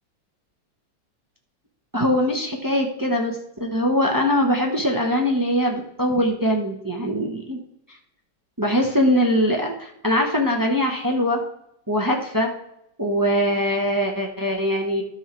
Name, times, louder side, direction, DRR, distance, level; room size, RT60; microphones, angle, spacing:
voice 1, 1.9-7.6 8.6-11.4 11.9-12.5 13.0-15.0, equal, 15° right, 1 dB, 0.8 m, -22 dB
12.5 x 5.6 x 4.5 m, 0.79 s
omnidirectional pair, 1.9 m